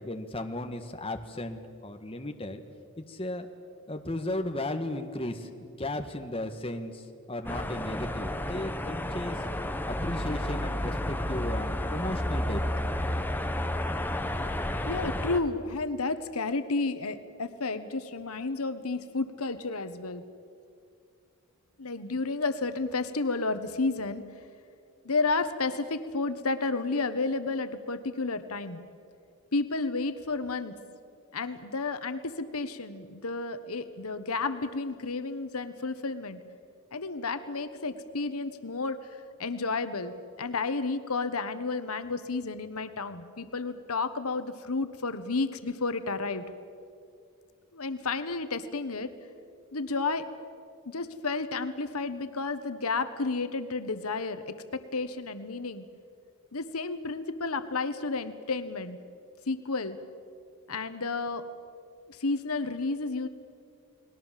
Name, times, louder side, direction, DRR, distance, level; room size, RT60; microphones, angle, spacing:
voice 1, 0.0-2.6 3.0-3.5 3.9-9.4 9.9-12.6, left 1 dB, 25° left, 5 dB, 1.5 m, -35 dB
sound 1, 7.4-15.4, left 1 dB, 10° left, 1.1 m, -31 dB
voice 2, 14.8-20.2 21.8-24.2 25.0-28.8 29.5-30.7 31.3-36.4 36.9-46.4 47.7-49.1 49.7-50.3 50.8-54.5 54.9-55.8 56.5-59.0 59.5-60.0 60.7-61.4 62.1-63.3, left 3 dB, 80° left, 11 dB, 1.3 m, -31 dB
30.0 x 20.5 x 7.5 m, 2.3 s
head